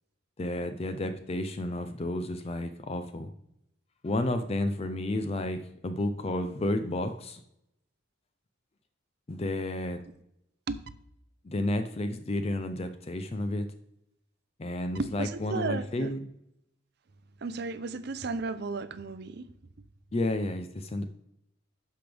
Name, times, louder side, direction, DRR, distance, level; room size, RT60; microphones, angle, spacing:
voice 1, 0.4-3.3 4.0-7.4 9.3-10.0 11.4-13.7 14.6-16.3 20.1-21.0, left 1 dB, 30° left, 9 dB, 0.4 m, -31 dB
voice 2, 15.0-16.1 17.4-19.5, right 3 dB, 50° right, 13 dB, 0.5 m, -34 dB
12.0 x 5.1 x 3.4 m, 0.78 s
head